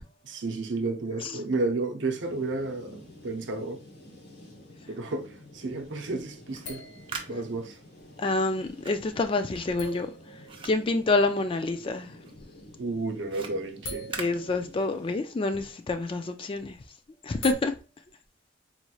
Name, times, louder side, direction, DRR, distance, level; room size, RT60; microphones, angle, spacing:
voice 1, 0.2-3.8 4.9-6.9 7.3-7.8 12.8-14.1, right 3 dB, 70° right, 0.7 m, -32 dB
sound 1, 2.1-15.2, left 1 dB, 60° left, 1.2 m, -50 dB
sound 2, 4.1-4.2 6.6-8.0 8.8-8.9 9.8-11.7 12.9-13.1 13.4-15.6 17.3-17.5, right 2 dB, 75° left, 0.8 m, -41 dB
sound 3, 6.5-11.9 12.2-15.1, right 5 dB, 30° right, 0.5 m, -44 dB
voice 2, 8.2-10.1 10.6-12.1 14.2-16.8 17.2-17.7, left 3 dB, 30° left, 0.3 m, -27 dB
4.1 x 3.0 x 2.3 m
head